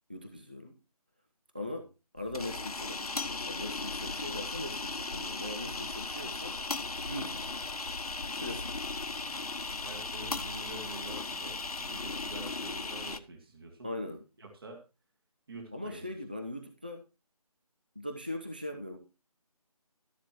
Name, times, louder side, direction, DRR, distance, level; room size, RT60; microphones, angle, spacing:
voice 1, 0.1-0.8 1.5-1.8 2.1-6.5 7.1-7.5 8.4-8.7 13.8-14.2 15.7-17.0 18.0-19.0, left 1 dB, 15° right, 4 dB, 0.4 m, -40 dB
sound 1, 2.2-13.2, left 3 dB, 70° left, 1.0 m, -37 dB
voice 2, 9.8-13.9 14.4-14.8 15.5-16.0, right 2 dB, 40° right, 2 dB, 2.6 m, -46 dB
13.0 x 11.0 x 3.0 m, 0.30 s
figure-of-eight pair, 170°, 20 cm